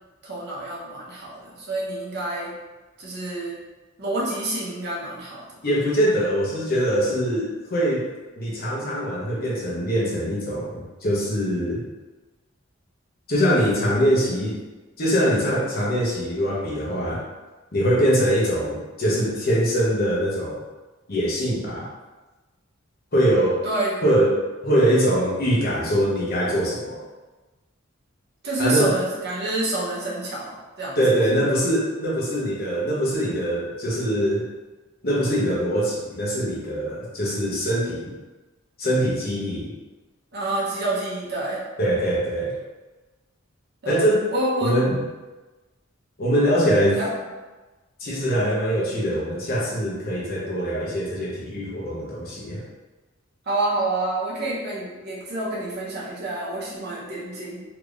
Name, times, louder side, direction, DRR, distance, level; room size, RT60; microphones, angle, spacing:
voice 1, 0.2-2.5 3.0-3.6 4.0-5.5 23.6-24.0 28.4-31.2 40.3-41.6 43.8-44.0 44.3-44.8 47.0-47.1 53.5-57.6, right 2 dB, 55° right, -5 dB, 0.8 m, -28 dB
voice 2, 5.6-8.1 8.4-11.8 13.3-14.6 15.0-17.2 17.7-20.6 21.1-21.9 23.1-23.6 24.0-24.4 24.6-27.0 28.6-29.0 31.0-34.5 35.0-38.2 38.8-39.7 41.8-42.5 43.9-44.2 44.6-45.0 46.2-47.0 48.0-52.6, equal, 50° left, -5 dB, 0.9 m, -23 dB
3.4 x 2.9 x 2.4 m, 1.2 s
head